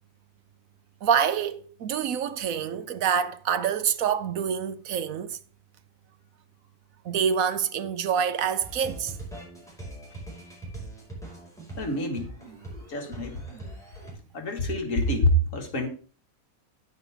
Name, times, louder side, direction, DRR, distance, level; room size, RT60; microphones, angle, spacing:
voice 1, 1.0-5.4 7.0-9.1, right 7 dB, 70° right, 1.1 m, -26 dB
sound 1, 8.6-14.1, right 1 dB, ahead, 4.9 m, -41 dB
voice 2, 11.8-12.3 12.9-13.4 14.3-15.9, equal, 60° left, 2.1 m, -26 dB
10.0 x 9.4 x 3.5 m
omnidirectional pair, 1.6 m